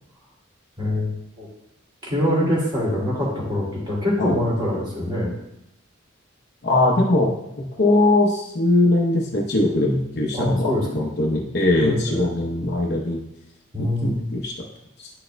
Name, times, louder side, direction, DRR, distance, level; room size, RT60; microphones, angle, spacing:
voice 1, 0.8-1.5 2.0-5.3 10.3-11.1 11.7-12.3 13.7-14.3, left 1 dB, 20° right, -5 dB, 2.5 m, -24 dB
voice 2, 6.6-13.2 13.8-14.5 15.0-15.1, left 2 dB, 50° left, -2 dB, 0.9 m, -21 dB
11.0 x 6.3 x 2.3 m, 0.82 s
head